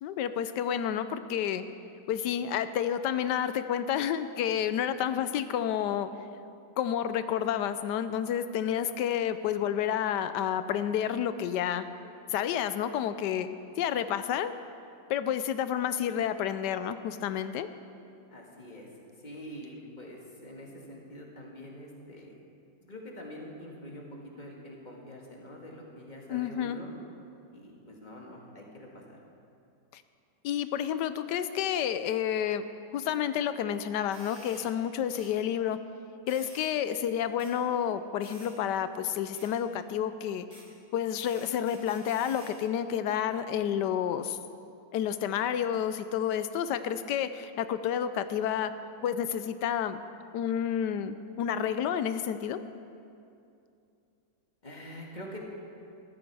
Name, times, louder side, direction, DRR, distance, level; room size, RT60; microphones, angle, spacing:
voice 1, 0.0-1.6 2.1-6.1 6.8-11.9 12.3-13.5 13.8-14.5 15.1-17.7 26.3-26.8 29.9-30.0 30.4-32.6 32.9-35.8 36.3-40.4 40.9-44.4 44.9-48.7 49.0-50.0 50.3-52.6, left 9 dB, 75° left, 12 dB, 1.2 m, -30 dB
voice 2, 18.3-18.9 19.2-22.4 22.8-24.1 24.4-26.9 27.5-29.2 54.6-55.4, equal, 25° left, -1 dB, 1.9 m, -45 dB
sound 1, 34.1-34.7 35.1-35.3 36.3-36.7 37.4-37.5 38.2-38.5 39.3-39.5 40.5-40.7 41.2-42.5, right 1 dB, 60° right, 3.9 m, -51 dB
14.5 x 12.5 x 4.7 m, 2.6 s
omnidirectional pair, 1.9 m